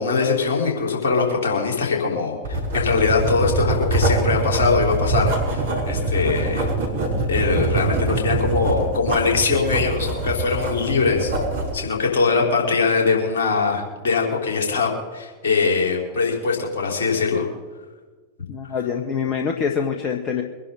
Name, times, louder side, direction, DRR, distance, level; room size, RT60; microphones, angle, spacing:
voice 1, 0.0-6.7 7.3-11.3 11.7-17.5, left 4 dB, 60° left, 0 dB, 4.9 m, -22 dB
Writing, 2.4-11.8, right 2 dB, 65° right, 5.7 m, -24 dB
voice 2, 18.5-20.4, left 6 dB, 35° left, 3 dB, 1.4 m, -25 dB
23.5 x 11.0 x 4.2 m, 1.3 s
figure-of-eight pair, 90°, 0 cm